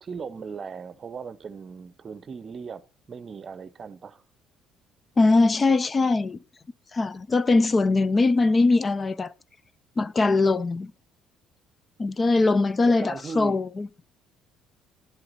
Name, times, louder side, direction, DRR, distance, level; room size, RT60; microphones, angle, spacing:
voice 1, 0.0-4.2 12.8-13.6, right 5 dB, 45° right, 0.7 m, -38 dB
voice 2, 5.2-6.4 6.9-9.3 10.0-10.9 12.0-13.9, left 3 dB, 30° left, 0.5 m, -21 dB
11.0 x 7.7 x 4.1 m
supercardioid pair, 70°, 0 cm